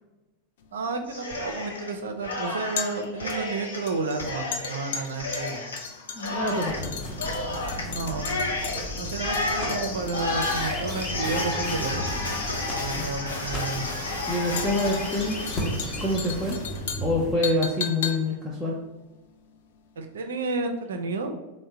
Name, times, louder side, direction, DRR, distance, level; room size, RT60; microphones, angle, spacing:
sound 1, 0.6-19.9 20.1-20.3, left 7 dB, 55° left, 0.4 m, -38 dB
voice 1, 0.7-5.6 7.8-8.4 9.0-11.9 12.7-13.9 20.0-21.3, right 3 dB, 65° right, 5 dB, 0.4 m, -31 dB
Cheering, 1.1-1.9 2.2-16.7, left 2 dB, 75° left, 0.8 m, -32 dB
voice 2, 6.1-6.9 13.0-13.1 14.3-15.5 16.0-16.6 17.0-18.8, left 1 dB, 5° left, -6 dB, 0.6 m, -26 dB
sound 2, 6.7-17.4, equal, 30° left, 0.9 m, -35 dB
3.5 x 2.1 x 4.2 m, 1.0 s
figure-of-eight pair, 90°, 0 cm